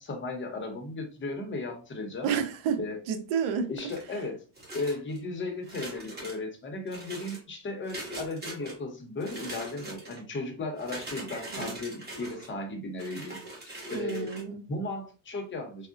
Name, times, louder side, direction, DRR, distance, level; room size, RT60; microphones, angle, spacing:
voice 1, 0.0-2.3 2.8-3.0 3.7-4.4 4.7-13.4 13.9-14.3 14.7-15.9, left 2 dB, 25° left, 0.7 m, -35 dB
voice 2, 2.2-2.8 3.1-3.7 11.5-11.7 13.9-14.6, right 7 dB, 70° right, 0.7 m, -30 dB
sound 1, 3.8-4.1 4.6-5.2 5.6-6.4 6.9-7.4 7.9-8.7 9.2-10.2 10.7-12.5 13.0-14.4, right 1 dB, 20° right, 1.1 m, -41 dB
3.6 x 2.1 x 2.5 m
cardioid pair, 125°, 49 cm